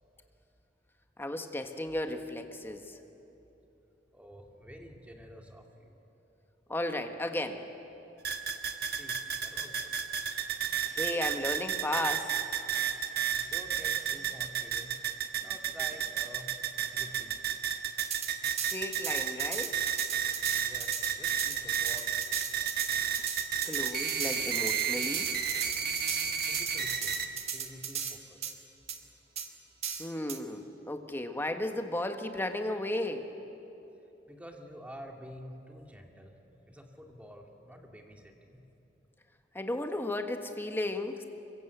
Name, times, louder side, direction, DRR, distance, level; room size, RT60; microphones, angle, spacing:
voice 1, 1.2-3.0 6.7-7.6 10.9-12.3 18.7-19.8 23.6-25.3 30.0-33.3 39.5-41.2, left 1 dB, 15° left, 6 dB, 1.4 m, -34 dB
voice 2, 4.1-6.0 8.9-10.0 13.2-15.0 15.4-17.4 20.6-22.7 26.5-28.6 34.3-36.4 36.7-38.6, equal, 10° right, 2 dB, 2.3 m, -49 dB
sound 1, 8.2-27.3, right 8 dB, 60° right, 1.5 m, -32 dB
sound 2, 18.0-28.2 28.4-28.5 28.9-29.0 29.4-29.5 29.8-30.4, right 7 dB, 35° right, 1.6 m, -37 dB
25.5 x 23.0 x 8.1 m, 2.9 s
head